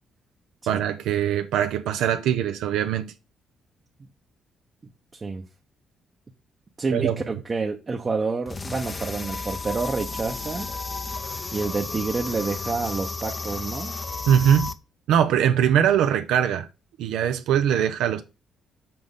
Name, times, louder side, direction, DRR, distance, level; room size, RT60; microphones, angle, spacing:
voice 1, 0.7-3.1 6.9-7.1 14.3-14.7 15.1-16.7 17.0-18.2, right 9 dB, 85° right, 0.6 m, -21 dB
voice 2, 5.1-5.4 6.8-10.7 11.5-14.0, right 4 dB, 35° right, 0.8 m, -28 dB
sound 1, 8.5-14.7, left 3 dB, 25° left, 0.5 m, -33 dB
6.0 x 5.0 x 3.6 m
cardioid pair, 90°, 0 cm